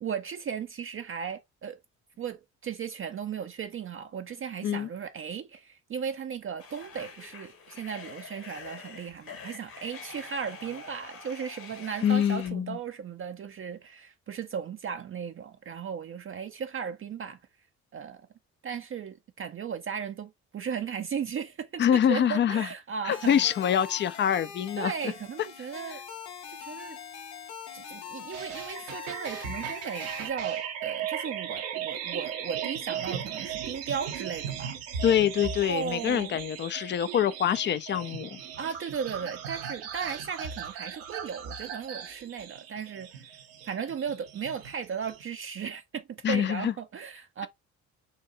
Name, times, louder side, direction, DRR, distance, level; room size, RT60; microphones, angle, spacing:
voice 1, 0.0-1.8 2.2-17.4 17.9-18.3 18.6-23.4 24.8-26.0 26.5-27.0 27.7-34.8 35.7-36.4 38.6-43.4 43.6-47.5, right 7 dB, 30° right, 0.5 m, -36 dB
sound 1, 6.6-12.5, left 5 dB, 55° left, 1.6 m, -45 dB
voice 2, 12.0-12.8 21.8-22.7 23.0-25.1 35.0-38.4 46.2-46.7, left 9 dB, 30° left, 0.4 m, -25 dB
sound 2, 23.1-30.3, left 8 dB, 75° left, 1.0 m, -43 dB
sound 3, 28.3-45.2, right 8 dB, 70° right, 0.9 m, -37 dB
6.5 x 2.7 x 2.5 m
figure-of-eight pair, 45°, 42 cm